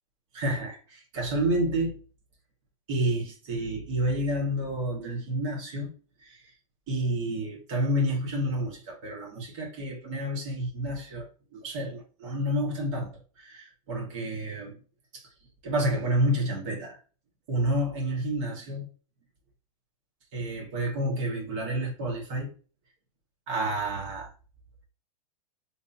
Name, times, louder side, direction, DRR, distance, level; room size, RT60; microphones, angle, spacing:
voice 1, 0.3-2.0 2.9-5.9 6.2-6.4 6.9-14.8 15.1-15.3 15.6-17.0 17.5-18.9 20.3-22.5 23.5-24.3, right 1 dB, 55° right, 2.2 m, -29 dB
3.8 x 3.6 x 2.9 m
hypercardioid pair, 135°, 20 cm